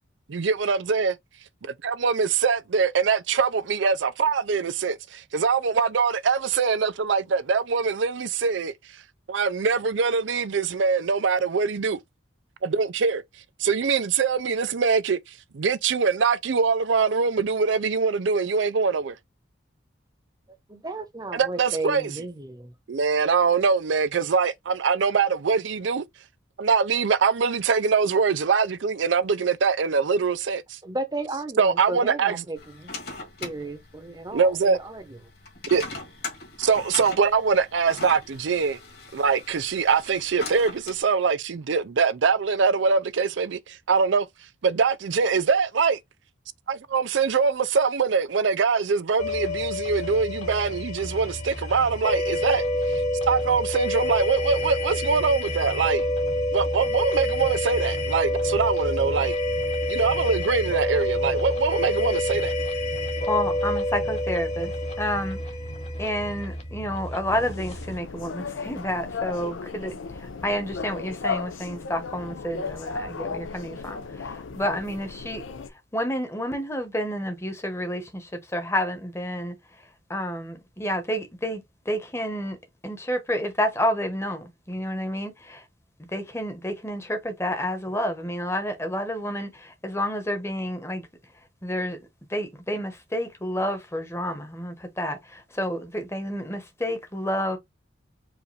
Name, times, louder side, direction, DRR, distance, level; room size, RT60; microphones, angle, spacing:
voice 1, 0.3-1.2 1.6-8.7 9.3-12.0 12.6-13.2 13.6-15.2 15.5-19.1 21.3-22.2 22.9-26.0 26.6-30.8 31.6-32.4 34.3-34.8 35.7-35.8 36.6-38.8 39.1-44.3 44.6-46.0 46.7-53.0 53.3-56.0 56.5-59.4 59.9-62.5, right 5 dB, 75° right, 0.5 m, -23 dB
voice 2, 20.7-22.7 30.8-32.9 33.4-35.0, right 2 dB, 20° right, 0.8 m, -34 dB
sound 1, 32.6-41.0, left 3 dB, 55° left, 1.9 m, -40 dB
sound 2, 49.2-68.0, left 1 dB, 35° left, 1.2 m, -28 dB
voice 3, 63.3-64.7 65.0-65.4 66.0-75.4 75.9-79.6 80.1-82.6 82.8-85.6 86.1-91.1 91.6-92.0 92.3-97.6, equal, 15° left, 1.0 m, -29 dB
sound 3, 67.3-75.7, left 4 dB, 85° left, 0.6 m, -35 dB
4.9 x 2.5 x 3.2 m
head